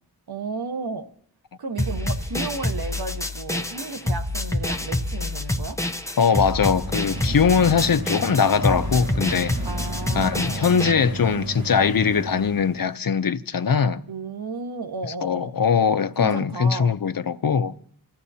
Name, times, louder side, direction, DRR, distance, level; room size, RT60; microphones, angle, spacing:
voice 1, 0.3-1.1 1.6-5.8 9.6-10.7 14.1-15.6 16.2-17.0, right 4 dB, 90° right, 1.1 m, -33 dB
sound 1, 1.8-10.9, left 1 dB, 10° left, 0.8 m, -27 dB
voice 2, 6.2-9.6 10.1-14.0 15.2-17.7, left 6 dB, 65° left, 0.7 m, -21 dB
sound 2, 6.3-12.9, right 2 dB, 50° right, 1.8 m, -33 dB
28.5 x 14.0 x 2.8 m
wide cardioid pair, 60°, 37 cm